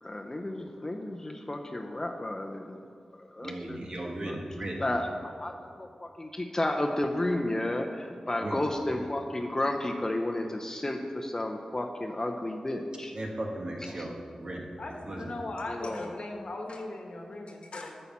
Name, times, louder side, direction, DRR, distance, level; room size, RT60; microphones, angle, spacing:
voice 1, 0.0-2.8 3.1-3.8 4.2-4.4 4.8-13.1 13.9-14.0 15.7-16.1, left 1 dB, 25° left, 3 dB, 0.6 m, -32 dB
voice 2, 3.4-4.8 8.4-8.6 13.1-14.7 15.0-15.3, right 1 dB, 45° right, 0 dB, 1.4 m, -36 dB
voice 3, 14.8-18.0, left 2 dB, 60° left, 2 dB, 1.2 m, -38 dB
8.3 x 5.5 x 7.2 m, 2.2 s
wide cardioid pair, 80°, 2 cm